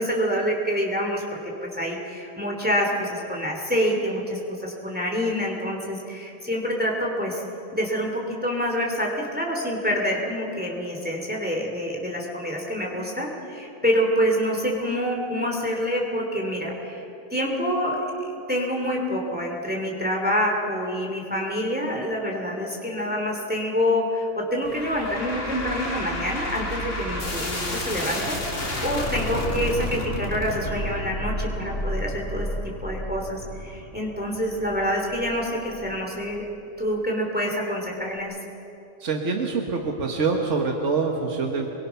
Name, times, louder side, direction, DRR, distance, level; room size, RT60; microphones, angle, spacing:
voice 1, 0.0-7.4 7.7-17.0 17.3-18.0 18.5-36.4 36.8-38.3, equal, 5° right, 0 dB, 2.8 m, -27 dB
sound 1, 24.6-35.9, left 1 dB, 80° left, 3.3 m, -31 dB
voice 2, 39.0-41.8, right 4 dB, 75° right, 2 dB, 1.8 m, -25 dB
28.0 x 22.5 x 5.8 m, 2.9 s
omnidirectional pair, 1.3 m